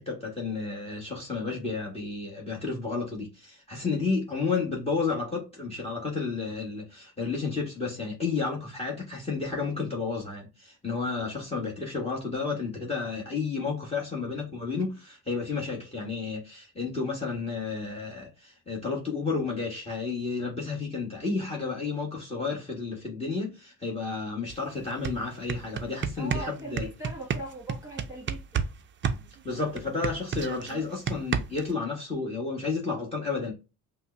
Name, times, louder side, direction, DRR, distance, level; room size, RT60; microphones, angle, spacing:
voice 1, 0.0-26.9 29.4-33.5, left 4 dB, 15° left, 1.4 m, -31 dB
sound 1, 24.5-24.6 24.9-28.7 29.0-31.7, right 6 dB, 35° right, 0.5 m, -30 dB
voice 2, 26.2-28.7, right 1 dB, 10° right, 1.7 m, -40 dB
5.2 x 2.2 x 2.5 m
supercardioid pair, 85°, 37 cm